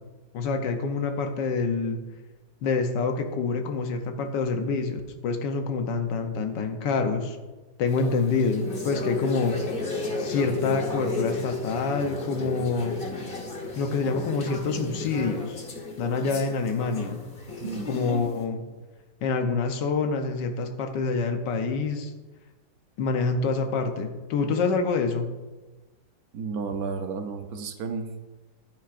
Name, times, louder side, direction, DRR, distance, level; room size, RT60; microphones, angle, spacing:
voice 1, 0.3-2.0 2.6-7.4 7.8-9.6 10.2-13.0 13.8-15.6 16.0-17.2 17.9-18.6 19.2-22.1 23.0-25.3, left 4 dB, 80° left, 6 dB, 1.5 m, -26 dB
sound 1, 7.9-18.4, left 3 dB, 35° left, 1.3 m, -33 dB
voice 2, 26.3-28.3, right 4 dB, 65° right, 6 dB, 1.1 m, -32 dB
10.5 x 9.2 x 2.5 m, 1.2 s
omnidirectional pair, 1.9 m